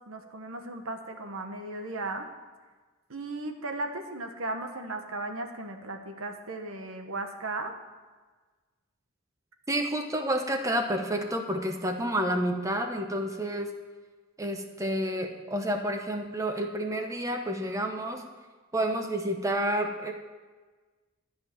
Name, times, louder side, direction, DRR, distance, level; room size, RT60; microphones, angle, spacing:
voice 1, 0.0-2.2 3.1-7.7, right 2 dB, 75° right, 5 dB, 1.3 m, -36 dB
voice 2, 9.7-13.7 14.4-18.3 18.7-20.1, right 1 dB, 15° right, 4 dB, 0.9 m, -29 dB
13.0 x 5.6 x 9.2 m, 1.4 s
head